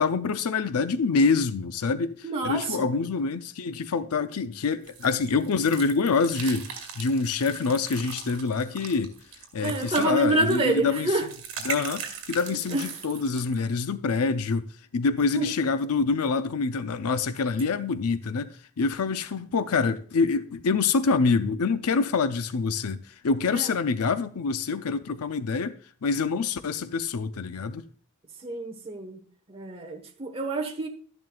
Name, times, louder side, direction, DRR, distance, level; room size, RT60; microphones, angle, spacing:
voice 1, 0.0-9.1 9.5-11.1 11.6-14.7 14.9-18.5 18.8-23.0 23.2-25.8 26.0-27.8, left 4 dB, 90° left, 0.6 m, -26 dB
voice 2, 2.2-2.9 9.6-11.3 12.7-12.9 15.3-15.5 23.5-23.7 28.4-29.2 29.5-30.9, right 2 dB, 25° right, 1.2 m, -27 dB
sound 1, 4.9-13.6, right 6 dB, 70° right, 1.9 m, -40 dB
12.5 x 11.0 x 2.3 m
head